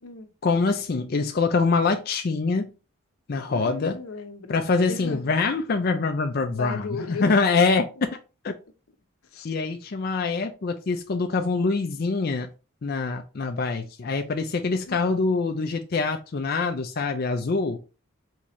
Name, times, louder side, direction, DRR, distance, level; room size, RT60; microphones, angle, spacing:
voice 1, 0.4-2.7 3.3-4.0 4.5-7.9 8.4-8.5 9.4-12.5 12.8-17.8, left 4 dB, 45° left, 0.4 m, -24 dB
voice 2, 3.5-4.6 4.9-5.2 6.5-7.4 9.3-9.5 14.9-15.0, left 4 dB, 85° left, 0.7 m, -35 dB
4.2 x 3.6 x 3.0 m
head